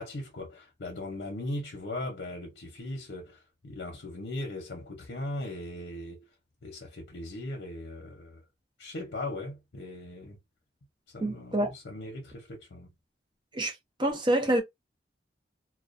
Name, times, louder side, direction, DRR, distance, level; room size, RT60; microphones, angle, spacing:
voice 1, 0.0-6.3 6.6-8.4 8.8-10.4 11.1-12.9, left 1 dB, 75° left, 0.7 m, -39 dB
voice 2, 11.2-11.7 13.5-13.7 14.0-14.6, right 1 dB, 25° right, 0.6 m, -26 dB
2.2 x 2.2 x 2.5 m
head